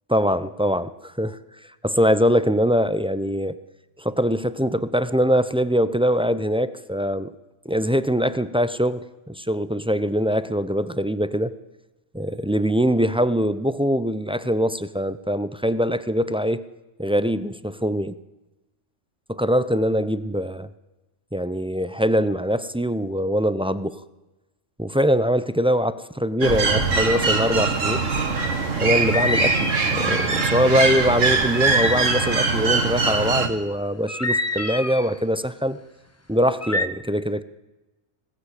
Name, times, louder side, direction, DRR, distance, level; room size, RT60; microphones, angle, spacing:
voice 1, 0.1-1.4 1.8-3.6 4.0-7.3 7.6-11.5 12.1-16.6 17.0-18.2 19.3-20.7 21.3-24.0 24.8-28.1 28.8-35.8 36.3-37.4, equal, 5° right, 14 dB, 0.4 m, -23 dB
sound 1, 26.4-33.5, right 4 dB, 75° right, 2.2 m, -22 dB
sound 2, 26.9-27.4 29.0-30.4 31.5-32.6 34.1-35.1 36.6-36.9, left 2 dB, 15° left, 0.8 m, -27 dB
20.5 x 17.5 x 8.3 m, 1.1 s
omnidirectional pair, 1.3 m